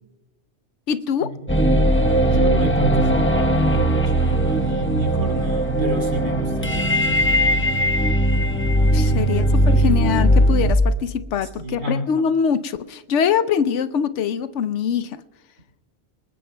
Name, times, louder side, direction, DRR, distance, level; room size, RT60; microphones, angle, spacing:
voice 1, 0.9-1.3 8.9-15.2, left 7 dB, 75° left, 12 dB, 0.9 m, -23 dB
sound 1, 1.5-10.7, right 1 dB, 10° left, 0.8 m, -19 dB
voice 2, 2.2-7.5 9.0-10.0 11.4-12.0, right 1 dB, 85° right, 1 dB, 3.5 m, -31 dB
26.5 x 20.0 x 2.2 m, 1.1 s
omnidirectional pair, 1.3 m